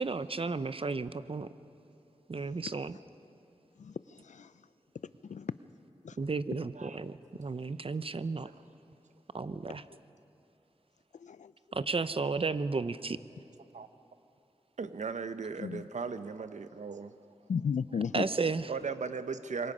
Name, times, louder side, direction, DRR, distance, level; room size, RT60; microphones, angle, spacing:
voice 1, 0.0-1.5 2.3-3.0 6.2-8.5 9.3-9.8 11.7-13.2 18.1-18.7, right 4 dB, 50° right, 14 dB, 0.7 m, -33 dB
voice 2, 3.8-4.5 5.2-5.5 6.0-6.2 11.2-11.5 15.6-15.8 17.5-18.3, left 6 dB, 90° left, 16 dB, 0.4 m, -35 dB
voice 3, 14.8-17.1 18.7-19.7, right 5 dB, 85° right, 11 dB, 0.8 m, -37 dB
26.0 x 22.5 x 5.5 m, 2.7 s
cardioid pair, 50°, 12 cm